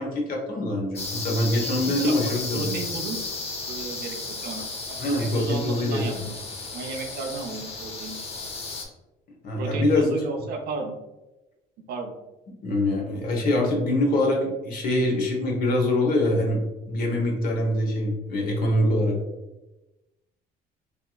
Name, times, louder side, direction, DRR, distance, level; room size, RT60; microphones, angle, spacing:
voice 1, 0.0-2.8 5.0-6.2 9.4-10.1 12.6-16.6 16.9-19.2, left 1 dB, 60° left, 0 dB, 1.0 m, -24 dB
sound 1, 1.0-8.9, left 3 dB, 35° left, 0.6 m, -34 dB
voice 2, 1.7-3.2 3.7-6.4 6.7-8.2 9.6-11.0 11.9-12.1, right 4 dB, 65° right, 2 dB, 0.6 m, -34 dB
3.3 x 2.9 x 2.3 m, 1.0 s
cardioid pair, 110°, 17 cm